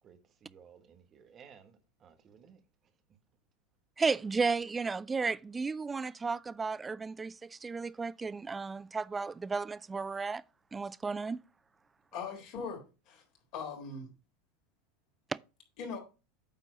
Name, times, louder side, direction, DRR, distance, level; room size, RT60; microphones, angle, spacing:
voice 1, 0.0-3.2 12.1-12.3, right 7 dB, 35° right, 1.5 m, -58 dB
voice 2, 4.0-10.4 10.7-11.4, right 4 dB, 15° right, 0.3 m, -33 dB
voice 3, 12.1-13.2 13.5-14.1 15.8-16.0, left 5 dB, 50° left, 3.8 m, -40 dB
9.1 x 4.0 x 5.6 m
supercardioid pair, 115°, 0 cm